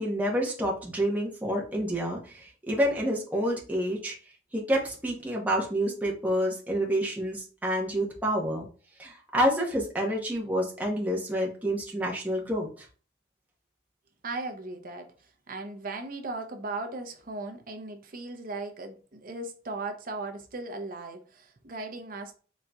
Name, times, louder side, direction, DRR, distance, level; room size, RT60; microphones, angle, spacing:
voice 1, 0.0-4.1 4.5-8.7 9.0-12.7, equal, 10° right, 0.9 m, -28 dB
voice 2, 14.2-15.1 15.5-22.3, right 3 dB, 50° right, 0.6 m, -37 dB
4.1 x 3.7 x 2.3 m
head